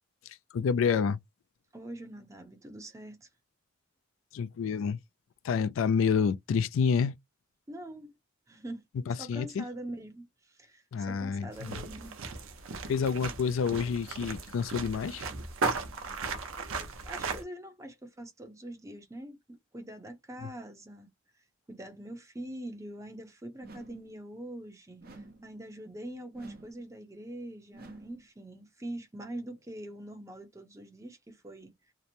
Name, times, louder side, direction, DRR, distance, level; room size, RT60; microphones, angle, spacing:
voice 1, 0.5-1.2 4.3-5.0 5.4-7.1 9.1-9.6 10.9-11.8 12.9-15.2 20.4-20.5, left 6 dB, 70° left, 0.3 m, -28 dB
voice 2, 1.7-3.3 7.7-8.1 8.5-8.8 9.1-12.2 16.6-21.1 21.4-31.7, right 1 dB, 15° right, 0.7 m, -44 dB
sound 1, 11.5-17.4, right 4 dB, 85° right, 0.7 m, -36 dB
sound 2, 23.6-24.2 25.0-25.6 26.3-26.9 27.7-28.3, right 2 dB, 50° right, 0.7 m, -49 dB
2.9 x 2.0 x 2.5 m
head